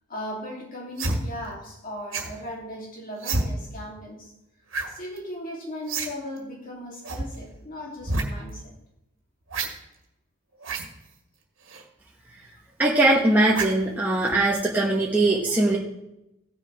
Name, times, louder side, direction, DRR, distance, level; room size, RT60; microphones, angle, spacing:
voice 1, 0.1-4.3 4.9-8.7 12.5-12.6 15.5-15.6, left 1 dB, 40° left, -1 dB, 2.8 m, -37 dB
sound 1, 1.0-1.2 2.1-2.4 3.2-3.4 4.7-4.9 5.2-5.3 5.9-6.1 6.4-6.5 7.0-7.2 8.0-8.2 9.5-9.7 10.6-10.9 11.7-11.8 13.5-13.8 14.3-14.4, right 3 dB, 65° right, 1.8 m, -28 dB
voice 2, 12.8-15.8, right 2 dB, 10° right, -4 dB, 1.0 m, -21 dB
16.0 x 6.6 x 4.7 m, 0.88 s
head